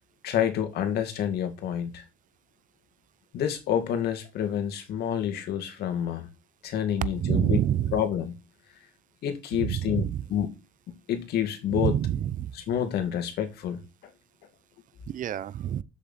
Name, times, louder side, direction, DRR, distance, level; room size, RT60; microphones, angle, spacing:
voice 1, 0.2-2.0 3.3-6.3 6.6-7.6 7.9-8.3 9.2-10.5 11.1-12.0 12.5-13.8, left 9 dB, 70° left, 2.2 m, -28 dB
voice 2, 7.2-8.0 9.6-10.2 11.7-12.5 15.1-15.8, right 11 dB, 50° right, 0.7 m, -27 dB
7.7 x 6.9 x 4.2 m
cardioid pair, 110°, 17 cm